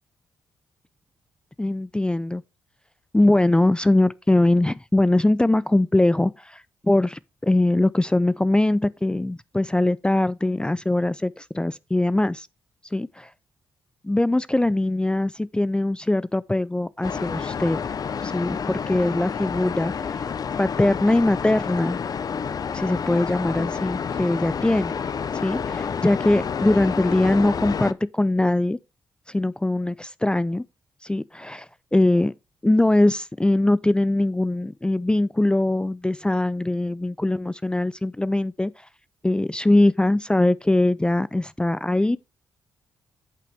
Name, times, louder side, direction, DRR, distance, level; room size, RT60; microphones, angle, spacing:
voice 1, 1.6-2.4 3.1-12.5 12.9-13.3 14.0-17.8 18.2-20.2 20.6-22.0 22.7-24.9 25.4-28.8 29.3-30.6 31.0-32.3 32.6-38.7 39.2-42.2, left 1 dB, 10° left, 0.4 m, -22 dB
sound 1, 17.0-27.9, left 6 dB, 50° left, 0.6 m, -29 dB
10.5 x 5.7 x 3.4 m
supercardioid pair, 50°, 8 cm